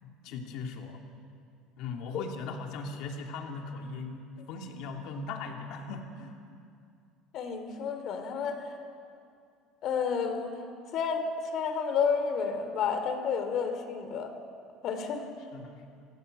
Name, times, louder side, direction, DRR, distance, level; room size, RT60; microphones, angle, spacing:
voice 1, 0.0-1.0 1.8-6.4 15.5-16.0, left 4 dB, 65° left, 2 dB, 2.7 m, -39 dB
voice 2, 7.3-8.6 9.8-10.5 10.9-11.2 11.5-14.3 14.8-15.3, left 6 dB, 50° left, 8 dB, 3.0 m, -30 dB
27.5 x 16.5 x 8.0 m, 2.4 s
cardioid pair, 140°, 0 cm